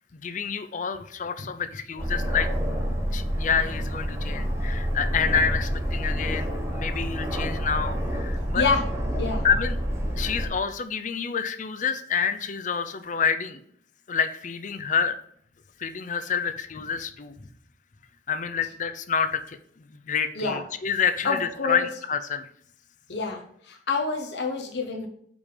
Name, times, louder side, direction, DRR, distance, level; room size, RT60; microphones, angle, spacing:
voice 1, 0.2-2.5 3.1-8.6 9.4-9.8 10.2-13.6 14.1-15.2 15.8-17.3 18.3-19.6 19.9-22.4, left 6 dB, 45° left, 11 dB, 0.5 m, -28 dB
Aircraft, 2.0-10.5, equal, 15° right, 1.2 m, -28 dB
voice 2, 21.2-21.8 23.1-25.1, left 4 dB, 70° left, 2 dB, 0.9 m, -27 dB
5.2 x 5.1 x 5.0 m, 0.64 s
head